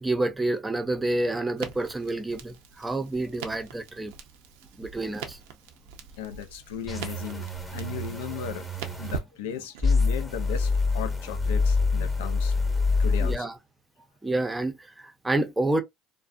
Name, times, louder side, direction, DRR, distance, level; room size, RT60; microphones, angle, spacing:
voice 1, 0.0-4.1 4.8-5.4 13.2-13.5 14.2-15.8, right 2 dB, 15° right, 0.5 m, -28 dB
Crackle, 1.6-9.9, right 7 dB, 85° right, 0.5 m, -42 dB
voice 2, 6.2-7.5 7.7-8.7 9.0-12.6 13.0-13.5, left 10 dB, 90° left, 0.3 m, -36 dB
sound 1, 6.9-9.2 9.8-13.4, left 3 dB, 10° left, 0.8 m, -26 dB
2.5 x 2.1 x 2.4 m
supercardioid pair, 85°, 0 cm